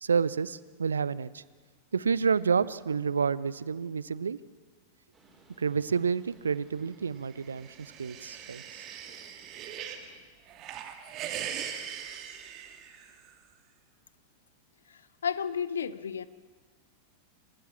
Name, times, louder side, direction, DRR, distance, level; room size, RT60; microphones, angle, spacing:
voice 1, 0.0-1.4 1.9-4.4 5.6-8.8, right 6 dB, 70° right, 19 dB, 0.6 m, -29 dB
sound 1, 5.1-10.2, right 2 dB, 15° right, 4.6 m, -60 dB
sound 2, 7.4-10.1 10.5-13.3, right 9 dB, 35° right, 2.1 m, -40 dB
voice 2, 14.9-16.3, left 7 dB, 70° left, 17 dB, 0.8 m, -33 dB
27.5 x 15.0 x 7.2 m, 1.4 s
figure-of-eight pair, 90°, 0 cm